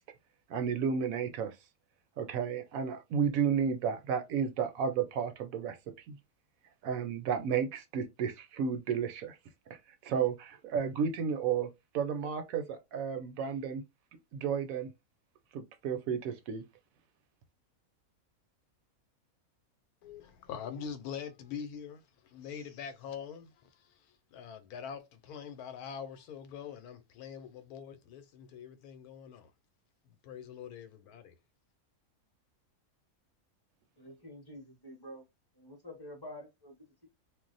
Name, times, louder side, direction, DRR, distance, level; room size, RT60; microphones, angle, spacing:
voice 1, 0.5-1.6 2.2-5.8 6.1-6.2 6.8-9.4 9.7-13.8 14.3-14.9 15.5-16.6, right 7 dB, 75° right, 1.0 m, -32 dB
voice 2, 20.0-29.5 30.0-31.4, left 7 dB, 90° left, 1.1 m, -44 dB
voice 3, 34.0-35.2 35.5-37.1, left 1 dB, 20° left, 0.9 m, -48 dB
2.5 x 2.0 x 3.8 m
omnidirectional pair, 1.5 m